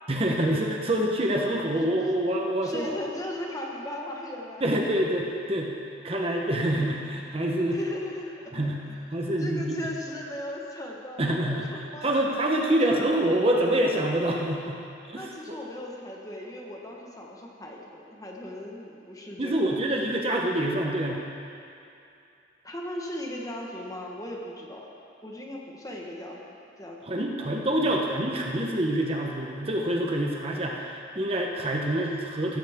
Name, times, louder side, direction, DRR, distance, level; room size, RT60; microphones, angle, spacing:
voice 1, 0.1-2.9 4.6-5.7 6.0-7.8 8.5-8.8 9.1-9.9 11.2-14.8 15.1-15.6 19.4-21.2 27.0-32.6, right 1 dB, 30° right, 0 dB, 1.0 m, -26 dB
voice 2, 2.6-4.7 7.6-8.4 8.6-8.7 9.4-12.3 12.8-13.1 15.1-19.7 22.6-24.9 25.2-26.4 26.8-27.0 27.3-27.5, left 1 dB, 20° left, -1 dB, 1.4 m, -37 dB
15.0 x 13.5 x 3.7 m, 2.6 s
head